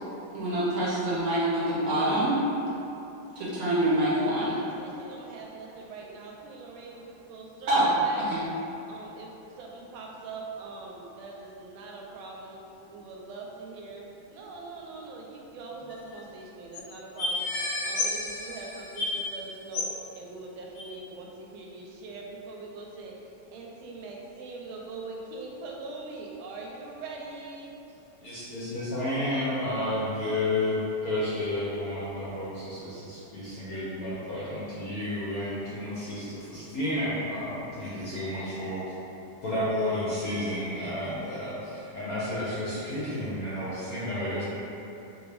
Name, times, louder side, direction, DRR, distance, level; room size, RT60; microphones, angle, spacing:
voice 1, 0.3-2.4 3.4-4.5 7.7-7.9 8.2-8.4, right 1 dB, 65° right, -9 dB, 1.0 m, -25 dB
voice 2, 4.1-8.2 8.9-12.6 12.9-17.5 17.9-19.9 20.1-23.1 23.5-27.7, right 3 dB, 90° right, -2 dB, 1.4 m, -42 dB
sound 1, 15.9-16.2 16.7-16.8 17.2-19.4 19.7-20.0 20.8-20.9, left 2 dB, 85° left, 1.4 m, -31 dB
voice 3, 28.2-38.8 39.4-44.4, left 1 dB, 65° left, -10 dB, 0.9 m, -31 dB
3.5 x 2.6 x 3.3 m, 2.9 s
omnidirectional pair, 2.2 m